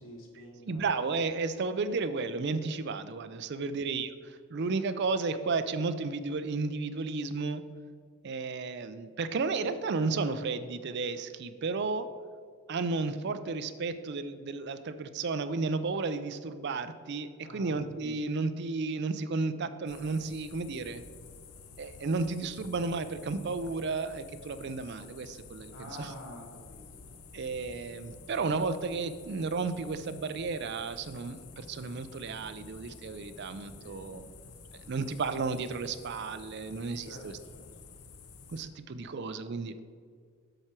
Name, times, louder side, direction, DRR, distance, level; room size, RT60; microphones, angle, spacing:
voice 1, 0.0-0.8 3.7-3.8 17.4-17.9 25.7-27.1 33.8-34.2 37.0-37.6, left 1 dB, 60° left, 0 dB, 1.4 m, -48 dB
voice 2, 0.7-7.6 8.2-12.1 12.7-21.0 21.8-26.1 27.3-34.2 34.7-37.4 38.5-39.7, right 4 dB, 50° right, 10 dB, 0.4 m, -33 dB
sound 1, 19.9-38.6, left 5 dB, 80° left, 0.7 m, -52 dB
sound 2, 20.8-38.1, equal, 15° left, 0.5 m, -58 dB
7.8 x 6.0 x 4.4 m, 2.1 s
head